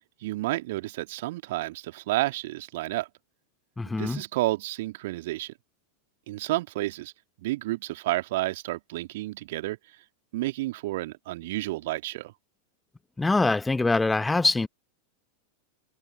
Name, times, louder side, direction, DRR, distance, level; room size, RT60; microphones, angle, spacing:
voice 1, 0.2-3.1 3.9-5.5 6.3-7.1 7.4-9.8 10.3-12.3, right 18 dB, 55° right, 2.1 m, -30 dB
voice 2, 3.8-4.2 13.2-14.7, left 3 dB, 10° left, 1.2 m, -24 dB
figure-of-eight pair, 90°, 0 cm